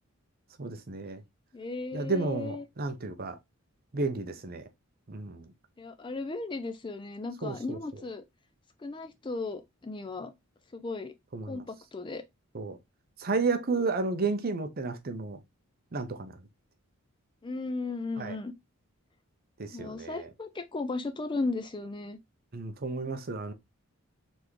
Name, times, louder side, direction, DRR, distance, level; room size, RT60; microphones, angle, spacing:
voice 1, 0.6-1.2 1.9-3.4 3.9-4.6 5.1-5.5 7.4-7.8 11.3-11.6 12.5-12.8 13.2-15.4 15.9-16.3 18.2-18.4 19.6-20.3 22.5-23.5, right 3 dB, 45° right, 0.6 m, -32 dB
voice 2, 1.5-2.6 5.8-8.2 8.8-10.3 10.7-11.1 11.5-12.2 17.4-18.5 19.7-22.2, left 3 dB, 20° left, 0.3 m, -36 dB
4.0 x 3.4 x 3.1 m
head